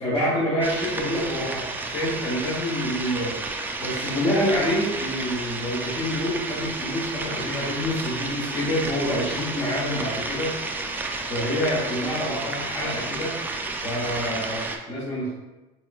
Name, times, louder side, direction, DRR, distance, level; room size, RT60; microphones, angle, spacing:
voice 1, 0.0-10.6 11.3-15.3, equal, 40° left, -8 dB, 1.2 m, -27 dB
sound 1, 0.6-14.8, right 3 dB, 10° right, 0.3 m, -31 dB
4.3 x 2.8 x 2.5 m, 1.1 s
supercardioid pair, 120°, 16 cm